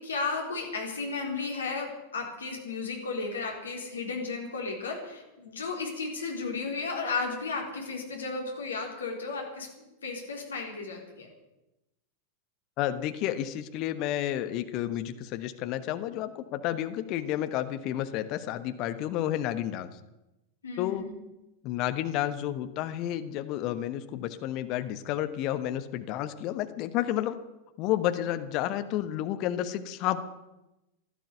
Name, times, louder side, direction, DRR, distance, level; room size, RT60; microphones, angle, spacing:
voice 1, 0.0-11.3 20.6-21.1, left 4 dB, 70° left, 1 dB, 4.1 m, -34 dB
voice 2, 12.8-19.9 20.8-21.1 21.6-27.4 27.8-30.2, left 12 dB, 40° left, 10 dB, 1.2 m, -31 dB
16.0 x 12.0 x 6.8 m, 0.96 s
figure-of-eight pair, 90°, 0 cm